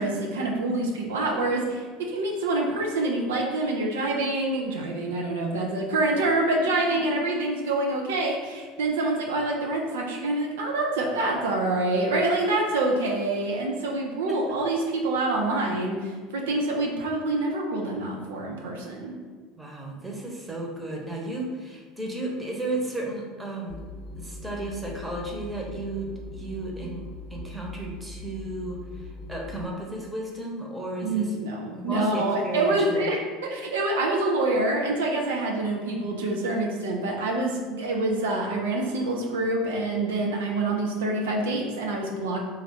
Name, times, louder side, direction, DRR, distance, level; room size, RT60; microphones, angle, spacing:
voice 1, 0.0-19.1 31.0-42.4, right 2 dB, 75° right, 0 dB, 0.5 m, -26 dB
voice 2, 19.6-23.8 24.1-31.3 31.7-33.1, right 1 dB, 10° right, -1 dB, 0.9 m, -34 dB
sound 1, 23.7-29.6, left 3 dB, 20° left, 0.9 m, -40 dB
3.2 x 2.4 x 4.1 m, 1.5 s
hypercardioid pair, 70°, 0 cm